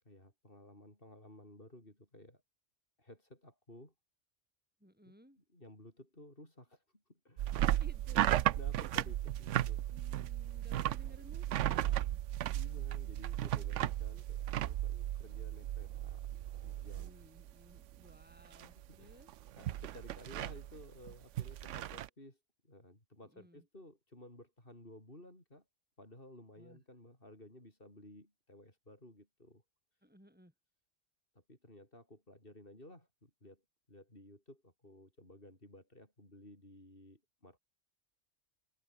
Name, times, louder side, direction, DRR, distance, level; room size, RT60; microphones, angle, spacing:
voice 1, 0.1-2.4 3.0-3.9 5.0-7.7 8.5-9.9 12.5-17.3 18.6-19.3 19.6-25.6 26.0-29.6 30.0-30.1 31.3-33.6 33.9-37.6, left 1 dB, 50° left, 7.4 m, -56 dB
voice 2, 4.8-5.4 7.6-8.5 9.0-9.1 9.9-12.2 17.0-19.3 23.3-23.6 26.6-26.8 30.0-30.5, equal, 10° right, 8.0 m, -59 dB
sound 1, 7.4-17.5 17.8-18.2 18.5-22.1, right 13 dB, 85° right, 1.0 m, -35 dB
omnidirectional pair, 1.2 m